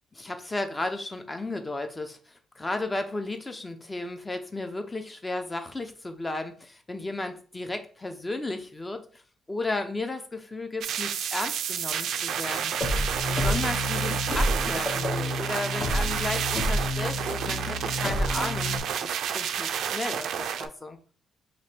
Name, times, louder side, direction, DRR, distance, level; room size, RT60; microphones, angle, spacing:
voice 1, 0.2-9.2 9.5-12.8 13.3-21.0, left 2 dB, 20° left, 7 dB, 0.7 m, -34 dB
sound 1, 10.8-20.7, right 8 dB, 75° right, 0.3 m, -30 dB
sound 2, 12.8-18.8, left 1 dB, 40° left, 1.0 m, -29 dB
3.1 x 3.0 x 4.4 m, 0.41 s
cardioid pair, 90°, 0 cm